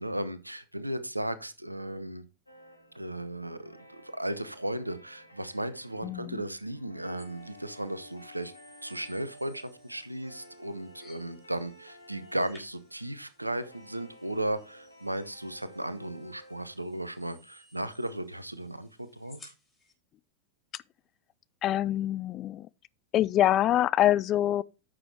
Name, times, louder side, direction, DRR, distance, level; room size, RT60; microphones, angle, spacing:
voice 1, 0.0-2.2 2.9-8.5 8.8-19.5, right 1 dB, 85° right, 0.8 m, -35 dB
sound 1, 2.5-16.7, left 1 dB, 85° left, 1.5 m, -54 dB
voice 2, 6.0-6.4 20.7-20.8 21.6-22.7 23.1-24.6, left 13 dB, 35° left, 0.4 m, -25 dB
sound 2, 7.2-19.9, left 2 dB, 15° left, 4.0 m, -60 dB
9.8 x 6.3 x 3.3 m
figure-of-eight pair, 90°, 0 cm